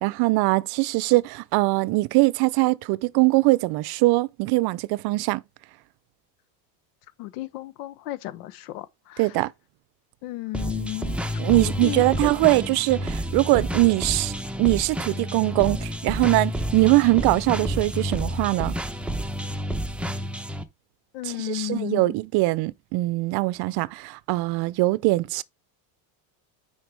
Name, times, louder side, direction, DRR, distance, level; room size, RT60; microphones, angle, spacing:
voice 1, 0.0-5.4 9.2-9.5 11.4-14.3 14.6-18.7 21.2-25.4, right 21 dB, 55° right, 0.6 m, -22 dB
voice 2, 7.2-8.8 10.2-11.2 11.5-12.0 21.1-22.0, left 16 dB, 85° left, 1.1 m, -33 dB
sound 1, 10.5-20.6, equal, 5° right, 0.7 m, -29 dB
9.4 x 4.6 x 3.4 m
supercardioid pair, 125°, 46 cm